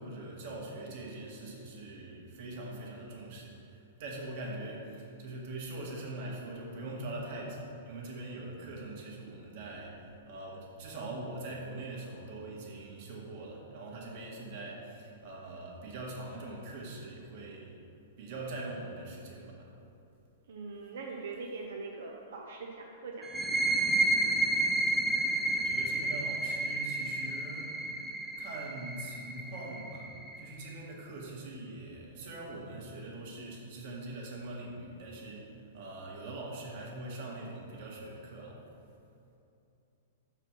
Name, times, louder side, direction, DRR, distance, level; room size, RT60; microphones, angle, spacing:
voice 1, 0.0-17.8 18.2-19.7 24.9-25.1 25.5-28.0 28.4-30.1 30.4-38.6, right 2 dB, 50° right, -2 dB, 1.7 m, -42 dB
voice 2, 20.5-23.3 23.6-23.7, right 4 dB, 75° right, 0 dB, 0.7 m, -42 dB
sound 1, 23.2-30.6, right 2 dB, 5° right, 0.4 m, -31 dB
6.1 x 4.8 x 6.1 m, 2.7 s
hypercardioid pair, 155°, 0 cm